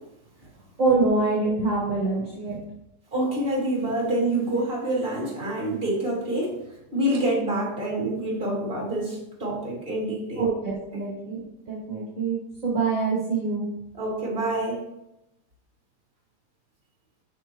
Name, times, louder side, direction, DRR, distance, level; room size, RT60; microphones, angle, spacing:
voice 1, 0.8-2.6 10.4-12.4 12.6-13.7, right 3 dB, 50° right, -6 dB, 2.2 m, -25 dB
voice 2, 3.1-6.6 6.9-10.5 10.9-11.0 13.9-14.8, right 1 dB, 35° right, -4 dB, 2.9 m, -27 dB
8.6 x 6.3 x 3.0 m, 0.87 s
omnidirectional pair, 1.7 m